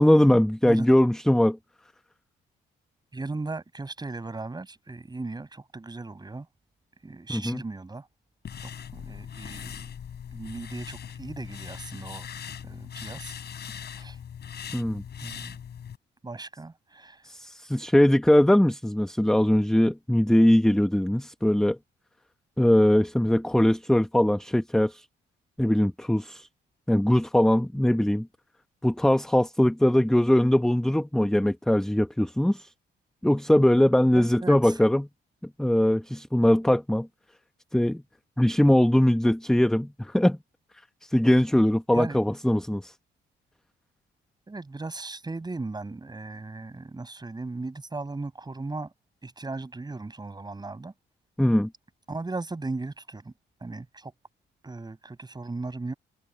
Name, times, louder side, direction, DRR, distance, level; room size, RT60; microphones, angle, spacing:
voice 1, 0.0-1.6 7.3-7.6 14.7-15.0 17.2-21.8 22.6-25.0 25.6-26.5 26.9-28.3 28.8-32.7 33.2-35.1 35.6-37.1 37.7-38.0 38.4-40.4 41.0-42.9 51.4-51.7, left 1 dB, 5° left, 1.0 m, -21 dB
voice 2, 3.1-6.5 7.0-8.1 8.6-9.8 10.3-12.3 12.6-13.3 13.9-14.2 15.2-15.6 16.2-17.3 34.1-34.8 41.9-42.2 44.5-48.9 49.2-50.9 52.1-53.3 53.6-54.1 54.6-55.9, right 3 dB, 20° right, 6.4 m, -37 dB
sound 1, 8.4-16.0, left 8 dB, 55° left, 6.1 m, -40 dB
cardioid pair, 90°, 20 cm